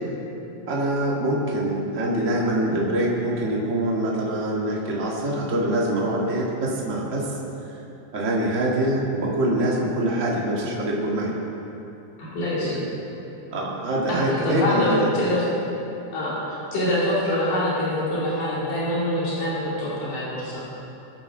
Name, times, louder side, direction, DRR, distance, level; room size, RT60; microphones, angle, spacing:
voice 1, 0.7-7.3 8.1-11.3 12.6-12.9 13.5-15.1, right 1 dB, 30° right, -4 dB, 1.8 m, -24 dB
voice 2, 12.2-12.8 14.1-15.4 16.1-20.6, left 1 dB, 85° left, -8 dB, 4.3 m, -25 dB
22.5 x 9.0 x 3.7 m, 3.0 s
omnidirectional pair, 3.6 m